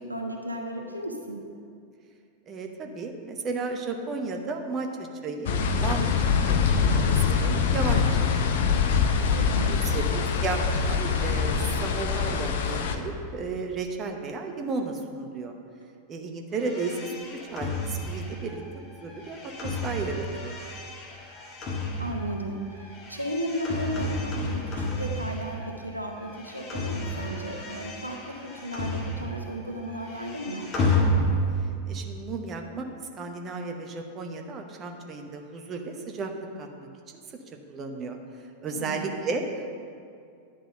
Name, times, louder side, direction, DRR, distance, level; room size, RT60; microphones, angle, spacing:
voice 1, 0.0-1.4 9.3-9.8 22.0-30.7 38.7-39.1, right 1 dB, 85° right, 2 dB, 0.7 m, -34 dB
voice 2, 2.5-6.1 6.7-8.3 8.5-8.7 9.3-15.5 16.1-18.6 19.0-20.6 31.9-32.8 33.2-36.9 37.7-38.2 38.6-39.4, right 4 dB, 25° right, 3 dB, 0.8 m, -34 dB
sound 1, 5.5-13.0, left 6 dB, 55° left, 0.6 m, -24 dB
sound 2, 16.5-25.8 26.1-29.6 29.8-31.7, left 1 dB, 30° left, 1.4 m, -31 dB
10.0 x 3.9 x 6.6 m, 2.3 s
figure-of-eight pair, 90°, 0 cm